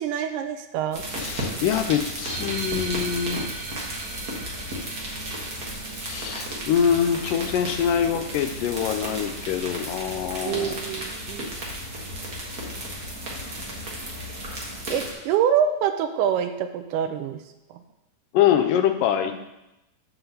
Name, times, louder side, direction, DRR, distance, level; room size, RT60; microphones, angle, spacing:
voice 1, 0.0-1.0 10.4-11.5 14.9-17.4 17.7-17.8, right 8 dB, 80° right, 7 dB, 2.1 m, -25 dB
sound 1, 0.9-15.1, right 1 dB, 45° right, 1.2 m, -34 dB
voice 2, 1.1-3.4 6.0-10.8 18.3-19.3, left 9 dB, 90° left, 8 dB, 2.2 m, -24 dB
sound 2, 2.2-7.2, right 3 dB, 65° right, 1.1 m, -39 dB
6.0 x 4.7 x 6.6 m, 0.91 s
omnidirectional pair, 3.8 m